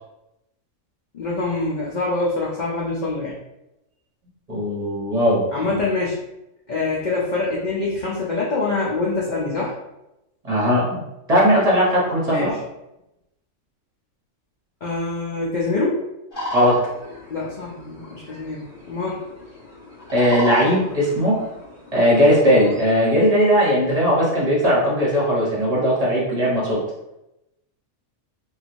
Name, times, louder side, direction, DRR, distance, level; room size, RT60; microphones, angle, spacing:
voice 1, 1.1-3.4 5.5-6.2 6.7-9.7 12.3-12.6 14.8-16.0 17.3-19.2, left 3 dB, 75° left, -5 dB, 0.4 m, -25 dB
voice 2, 4.5-5.8 10.4-11.0 11.3-12.5 16.5-16.8 20.1-21.4 21.9-26.8, equal, 30° right, -7 dB, 0.9 m, -18 dB
sound 1, 16.3-22.8, left 1 dB, 40° left, 1.5 m, -35 dB
3.0 x 2.5 x 2.5 m, 0.90 s
omnidirectional pair, 1.4 m